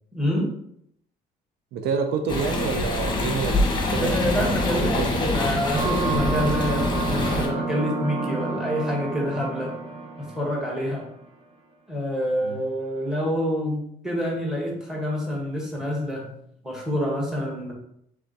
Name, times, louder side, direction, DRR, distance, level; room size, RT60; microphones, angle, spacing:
voice 1, 0.1-0.5 2.8-2.9 3.5-3.6 3.9-9.7 10.2-11.1 11.9-16.3 16.6-17.7, equal, 5° right, -1 dB, 1.4 m, -27 dB
voice 2, 1.7-3.6 3.9-5.1 12.4-12.6, right 5 dB, 80° right, 6 dB, 0.5 m, -28 dB
sound 1, 2.3-7.5, left 2 dB, 25° left, 1.0 m, -25 dB
sound 2, 5.7-11.0, right 3 dB, 30° right, 0.8 m, -29 dB
3.4 x 3.4 x 4.0 m, 0.72 s
cardioid pair, 110°, 17 cm